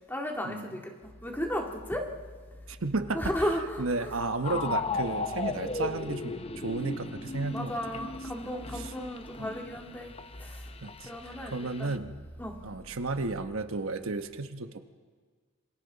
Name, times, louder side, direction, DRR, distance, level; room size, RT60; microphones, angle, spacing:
voice 1, 0.1-2.1 3.1-4.1 7.5-10.7 11.1-11.9 12.4-12.6, equal, 10° left, 1 dB, 2.0 m, -34 dB
sound 1, 1.0-14.2, equal, 60° left, 5.0 m, -50 dB
voice 2, 2.7-3.2 3.8-7.8 8.7-8.9 9.4-9.5 10.8-12.1 12.6-14.8, right 3 dB, 70° right, 8 dB, 1.0 m, -33 dB
sound 2, 4.4-12.0, left 3 dB, 25° left, 0.7 m, -37 dB
27.0 x 27.0 x 4.0 m, 1.5 s
head